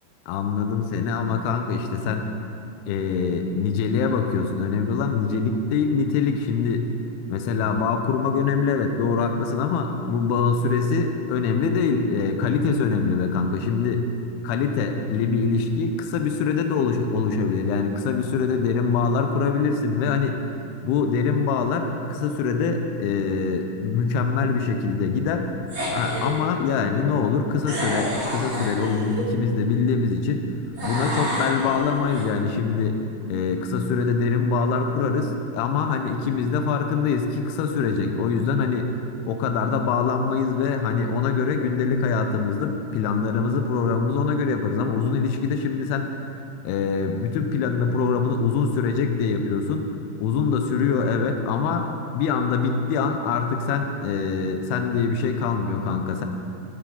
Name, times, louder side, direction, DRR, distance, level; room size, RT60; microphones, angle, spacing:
voice 1, 0.3-2.3 2.9-6.9 7.3-14.1 14.4-20.4 20.8-25.5 25.9-30.4 30.8-33.0 33.3-38.9 39.3-46.1 46.6-49.9 50.2-56.2, left 5 dB, 75° left, 5 dB, 2.6 m, -24 dB
sound 1, 25.7-26.4 27.6-29.3 30.8-32.2, equal, 30° right, 1.2 m, -29 dB
13.5 x 13.5 x 3.8 m, 2.6 s
omnidirectional pair, 5.0 m